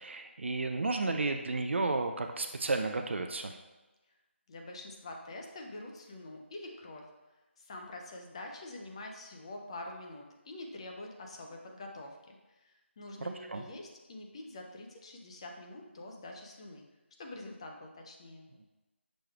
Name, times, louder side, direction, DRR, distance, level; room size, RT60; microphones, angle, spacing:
voice 1, 0.0-3.5 13.2-13.6, right 3 dB, 65° right, 5 dB, 0.4 m, -32 dB
voice 2, 4.5-7.1 7.6-16.8 17.2-18.5, left 2 dB, 25° left, 2 dB, 0.4 m, -46 dB
6.1 x 3.2 x 2.3 m, 1.1 s
figure-of-eight pair, 160°, 7 cm